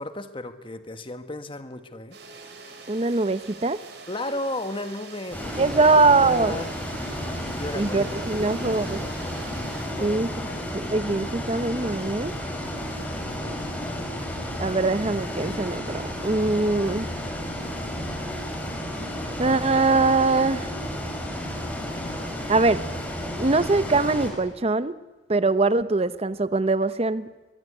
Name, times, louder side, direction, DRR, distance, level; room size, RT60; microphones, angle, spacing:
voice 1, 0.0-2.2 4.1-6.7 7.4-9.4 10.0-10.7 12.4-14.0, left 1 dB, 30° left, 1.4 m, -36 dB
sound 1, 2.1-9.9, right 4 dB, 70° right, 4.8 m, -44 dB
voice 2, 2.9-3.8 5.6-6.6 7.7-9.0 10.0-10.3 10.7-12.3 14.6-17.1 19.4-20.7 22.5-22.9 23.4-24.9 25.3-27.3, right 3 dB, 35° right, 0.8 m, -22 dB
Bus, 5.3-24.3, equal, 10° left, 5.3 m, -32 dB
23.5 x 23.0 x 9.8 m
head